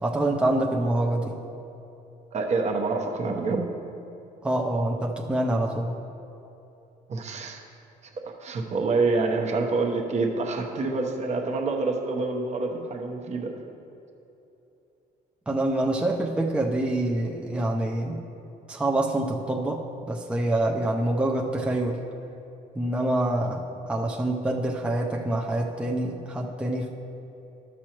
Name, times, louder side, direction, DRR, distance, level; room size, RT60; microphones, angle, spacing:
voice 1, 0.0-1.4 4.4-5.9 15.5-18.2 18.7-22.0 22.7-26.9, right 1 dB, 5° right, 0 dB, 0.6 m, -26 dB
voice 2, 2.3-3.7 7.1-7.6 8.0-13.5, right 3 dB, 40° right, 3 dB, 1.0 m, -27 dB
12.5 x 6.2 x 3.0 m, 2.9 s
cardioid pair, 110°, 17 cm